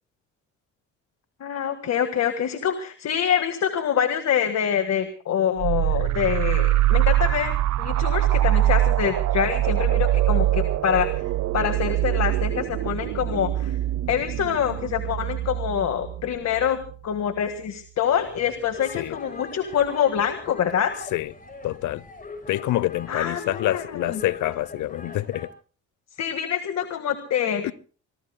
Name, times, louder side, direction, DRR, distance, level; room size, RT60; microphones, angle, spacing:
voice 1, 1.4-11.2 11.5-13.8 14.1-20.9 23.1-24.2 26.2-27.7, left 8 dB, 60° left, 1.7 m, -25 dB
sound 1, 5.6-16.9, right 14 dB, 70° right, 0.7 m, -23 dB
sound 2, 18.1-25.5, left 3 dB, 30° left, 6.5 m, -41 dB
voice 2, 21.6-22.0 22.5-25.5 27.6-27.7, left 15 dB, 75° left, 0.7 m, -26 dB
25.0 x 22.5 x 2.2 m
cardioid pair, 90°, 30 cm